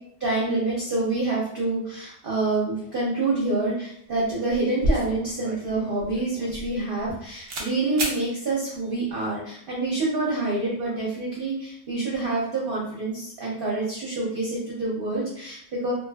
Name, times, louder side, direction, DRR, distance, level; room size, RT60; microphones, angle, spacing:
voice 1, 0.2-15.9, right 2 dB, 50° right, -5 dB, 0.7 m, -27 dB
sound 1, 4.1-4.2 4.5-7.2 7.5-7.7 8.0-8.2, right 1 dB, 85° right, 0.4 m, -29 dB
2.7 x 2.3 x 2.3 m, 0.68 s
omnidirectional pair, 1.5 m